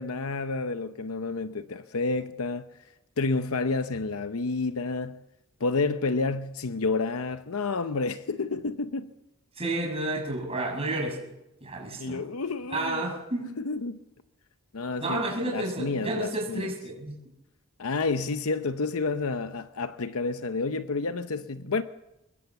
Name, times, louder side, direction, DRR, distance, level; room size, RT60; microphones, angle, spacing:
voice 1, 0.0-2.7 3.2-5.2 5.6-9.1 12.0-13.1 13.4-14.0 14.7-16.7 17.8-21.8, left 3 dB, 75° left, 0.8 m, -30 dB
voice 2, 9.6-11.2 11.6-12.2 12.7-13.5 15.0-17.1, right 2 dB, 25° right, 6.1 m, -31 dB
24.0 x 21.0 x 7.1 m
head